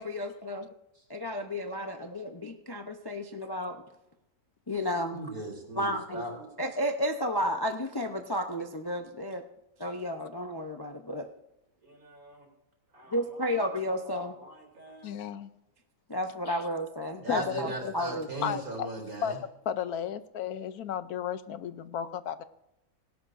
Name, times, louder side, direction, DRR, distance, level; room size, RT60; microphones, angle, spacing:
voice 1, 0.0-0.7 1.1-3.8 4.7-5.2 5.8-6.2 6.6-9.4 9.8-11.3 13.1-14.3 16.1-18.3, equal, 25° left, 0.6 m, -32 dB
voice 2, 5.1-6.5 11.8-12.5 12.9-15.1 17.2-19.4, right 2 dB, 70° right, 4.0 m, -40 dB
voice 3, 15.0-15.5 16.5-16.7 17.3-17.9 18.4-18.9 19.2-19.4 19.7-22.4, left 9 dB, 75° left, 1.2 m, -34 dB
17.5 x 17.5 x 2.6 m
omnidirectional pair, 1.6 m